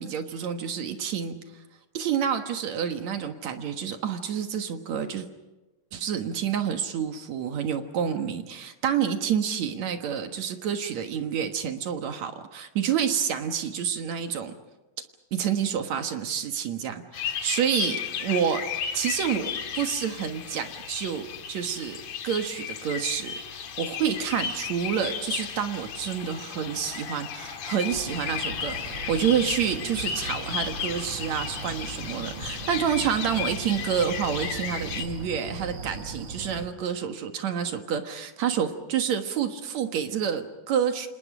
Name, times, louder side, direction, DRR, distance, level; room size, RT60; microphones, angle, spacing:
voice 1, 0.0-1.4 1.9-5.3 5.9-14.5 15.3-18.6 18.9-41.1, right 8 dB, 60° right, 6 dB, 2.5 m, -28 dB
sound 1, 17.1-35.1, left 8 dB, 60° left, 2.5 m, -34 dB
sound 2, 27.9-36.7, right 3 dB, 45° right, 2.0 m, -39 dB
29.0 x 27.5 x 5.0 m, 1.1 s
omnidirectional pair, 3.8 m